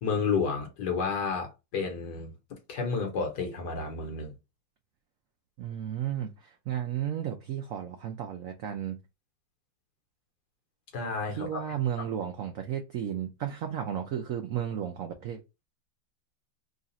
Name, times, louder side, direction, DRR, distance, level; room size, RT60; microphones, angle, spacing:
voice 1, 0.0-2.3 2.7-4.3 10.9-11.6 12.0-12.1, left 5 dB, 60° left, 1.6 m, -31 dB
voice 2, 5.6-9.0 11.3-15.4, right 10 dB, 85° right, 0.7 m, -33 dB
3.8 x 2.4 x 4.0 m
omnidirectional pair, 2.1 m